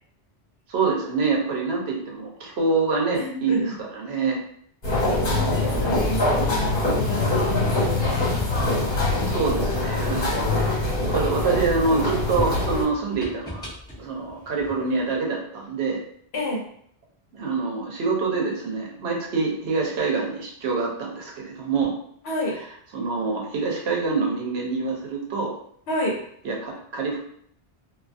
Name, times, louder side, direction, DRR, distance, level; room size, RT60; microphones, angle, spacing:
voice 1, 0.7-4.4 9.3-10.4 11.1-13.6 14.0-16.0 17.3-21.9 22.9-25.5 26.4-27.2, right 4 dB, 85° right, 0 dB, 0.9 m, -25 dB
voice 2, 3.1-3.8 4.9-8.4 16.3-16.6 22.2-22.6 25.9-26.2, left 1 dB, 85° left, -1 dB, 1.0 m, -30 dB
sound 1, 4.8-12.8, left 2 dB, 60° left, 1.3 m, -23 dB
sound 2, 8.1-11.2 11.7-15.1, equal, 5° left, 0.9 m, -39 dB
2.5 x 2.3 x 2.5 m, 0.66 s
omnidirectional pair, 1.1 m